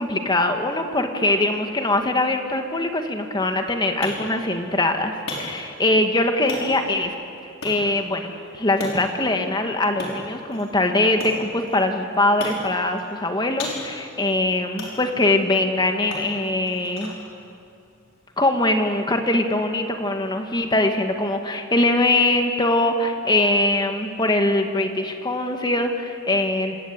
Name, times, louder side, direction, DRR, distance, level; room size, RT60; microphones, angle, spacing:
voice 1, 0.0-7.1 7.6-17.1 18.4-26.8, left 2 dB, 20° left, 5 dB, 1.8 m, -22 dB
sound 1, 3.4-19.0, left 2 dB, 90° left, 5.9 m, -39 dB
26.5 x 18.0 x 9.0 m, 2.5 s
head